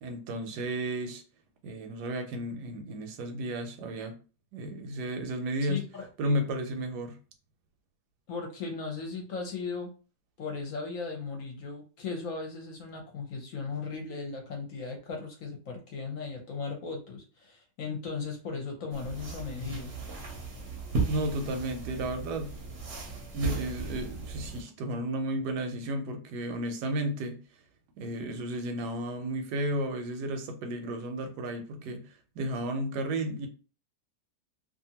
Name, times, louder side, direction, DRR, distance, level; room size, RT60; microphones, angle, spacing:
voice 1, 0.0-1.2 1.6-4.2 4.5-5.8 6.2-7.2 21.1-22.5 23.3-27.4 28.0-32.0 32.4-33.5, right 1 dB, 80° right, 1.2 m, -33 dB
voice 2, 5.7-6.4 8.3-9.9 10.4-19.9, left 4 dB, 65° left, 0.9 m, -37 dB
sound 1, 18.9-24.6, right 4 dB, 50° right, 0.8 m, -36 dB
2.7 x 2.5 x 2.8 m
omnidirectional pair, 1.8 m